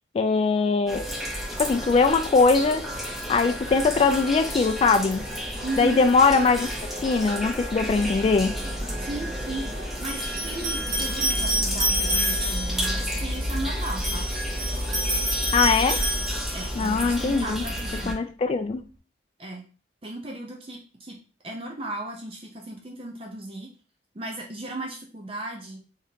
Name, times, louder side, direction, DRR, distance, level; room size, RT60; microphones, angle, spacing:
voice 1, 0.1-1.0 1.6-2.9 3.3-5.2 5.8-6.7 7.0-8.6 15.5-16.0 16.8-17.6 18.1-18.8, left 4 dB, 35° left, 0.3 m, -21 dB
sound 1, 0.9-18.1, equal, ahead, 0.8 m, -31 dB
voice 2, 5.6-6.0 9.0-14.3 16.5-18.2 19.4-19.6 20.0-21.2 21.4-23.7 24.1-25.8, right 2 dB, 30° right, 0.6 m, -36 dB
sound 2, 8.8-8.9 10.1-12.9 13.8-16.9, right 1 dB, 50° right, 1.8 m, -28 dB
3.6 x 3.5 x 2.7 m
head